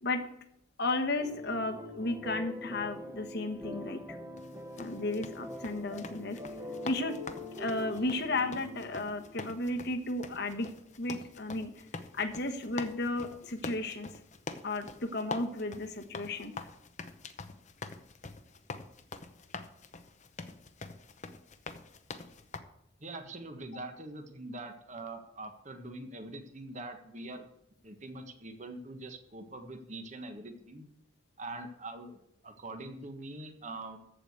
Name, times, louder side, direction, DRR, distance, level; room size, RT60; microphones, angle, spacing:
voice 1, 0.8-4.2 4.8-6.4 6.8-7.2 7.6-10.7 11.0-11.7 12.1-14.2 14.6-16.5, left 2 dB, 55° left, 6 dB, 1.2 m, -34 dB
sound 1, 1.2-9.9, left 1 dB, 15° right, 1.3 m, -44 dB
sound 2, 4.4-22.6, left 3 dB, 35° left, 0.8 m, -45 dB
voice 2, 23.0-27.4 27.8-30.9 31.4-34.0, right 2 dB, 35° right, 5 dB, 1.4 m, -43 dB
14.0 x 4.9 x 8.1 m, 0.75 s
head